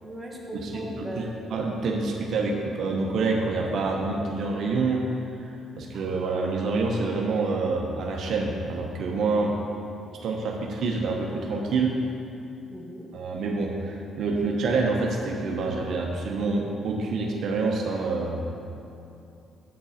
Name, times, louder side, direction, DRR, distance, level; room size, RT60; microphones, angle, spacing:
voice 1, 0.0-1.5 10.0-10.3 12.7-13.1, equal, 5° right, -3 dB, 1.5 m, -39 dB
voice 2, 0.5-5.0 5.4-9.5 10.2-11.9 13.1-18.4, right 3 dB, 70° right, 0 dB, 1.0 m, -27 dB
8.2 x 7.7 x 4.3 m, 2.7 s
cardioid pair, 90°, 0 cm